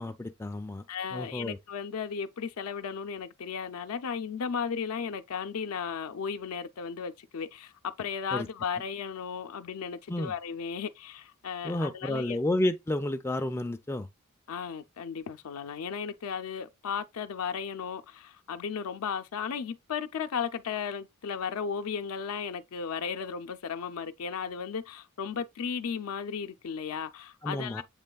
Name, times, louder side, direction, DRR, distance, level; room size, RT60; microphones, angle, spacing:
voice 1, 0.0-0.8 1.1-1.6 8.3-8.5 10.1-10.3 11.6-14.1 27.4-27.8, left 1 dB, 10° left, 0.3 m, -31 dB
voice 2, 0.9-12.4 14.5-27.8, left 6 dB, 75° left, 0.5 m, -35 dB
7.6 x 2.9 x 2.3 m
head